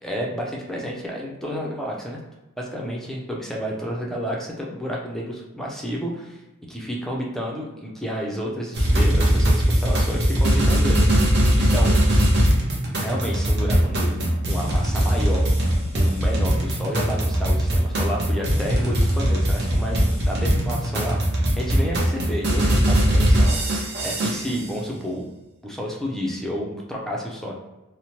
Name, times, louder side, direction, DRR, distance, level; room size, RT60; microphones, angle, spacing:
voice 1, 0.0-2.2 2.6-6.4 6.7-11.0 11.5-12.0 13.0-15.6 15.9-25.3 25.6-27.5, equal, ahead, -3 dB, 0.4 m, -30 dB
sound 1, 8.7-24.7, equal, 55° right, 0.7 m, -20 dB
2.9 x 2.1 x 2.8 m, 1.0 s
head